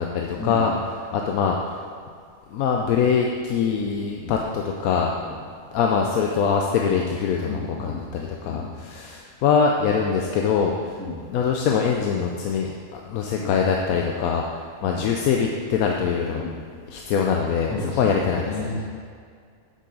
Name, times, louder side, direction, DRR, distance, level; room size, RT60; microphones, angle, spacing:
voice 1, 0.0-1.8 2.5-5.1 5.7-11.0 11.3-16.4 16.9-18.8, left 6 dB, 85° left, 1 dB, 1.0 m, -23 dB
voice 2, 7.4-8.0 8.4-8.6 11.0-11.2 13.4-13.5 14.8-15.0 16.3-16.6 17.7-18.1 18.4-18.8, left 3 dB, 15° left, -6 dB, 1.6 m, -31 dB
8.0 x 6.5 x 3.9 m, 2.1 s
omnidirectional pair, 1.5 m